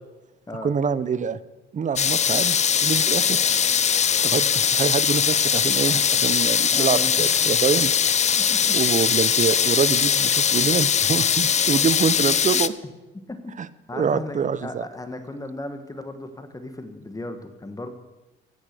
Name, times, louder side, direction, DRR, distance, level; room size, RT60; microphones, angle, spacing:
voice 1, 0.6-1.4 1.7-2.5 2.8-3.4 4.2-7.9 8.7-12.7 13.6-13.7 13.9-14.8, right 6 dB, 40° right, 16 dB, 0.7 m, -25 dB
sound 1, 2.0-12.7, left 7 dB, 35° left, 0.5 m, -21 dB
voice 2, 6.7-7.3 8.3-8.8 13.1-13.5 13.9-17.9, left 2 dB, 15° left, 8 dB, 1.4 m, -36 dB
16.0 x 6.1 x 6.7 m, 1.1 s
cardioid pair, 90°, 20 cm